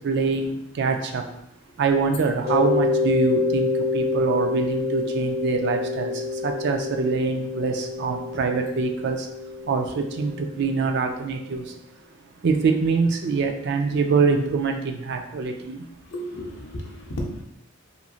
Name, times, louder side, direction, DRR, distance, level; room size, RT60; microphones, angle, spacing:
voice 1, 0.0-1.2 1.8-3.7 3.9-6.1 6.4-9.2 9.7-11.6 12.4-15.8, right 4 dB, 50° right, 4 dB, 0.3 m, -24 dB
Mallet percussion, 2.4-11.0, left 3 dB, 15° right, 1.1 m, -27 dB
voice 2, 16.1-17.4, equal, 55° left, 0 dB, 0.5 m, -33 dB
2.9 x 2.6 x 2.3 m, 0.76 s
head